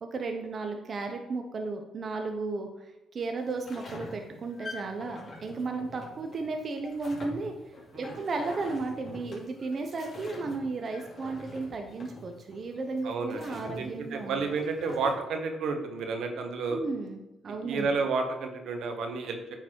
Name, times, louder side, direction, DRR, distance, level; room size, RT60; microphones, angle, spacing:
voice 1, 0.0-14.4 16.7-17.9, right 3 dB, 50° right, 5 dB, 0.8 m, -34 dB
sound 1, 3.4-15.1, left 2 dB, 45° left, 2.7 m, -45 dB
voice 2, 13.0-16.8 17.7-19.5, right 4 dB, 75° right, 5 dB, 1.0 m, -31 dB
8.8 x 4.0 x 4.5 m, 0.98 s
cardioid pair, 75°, 0 cm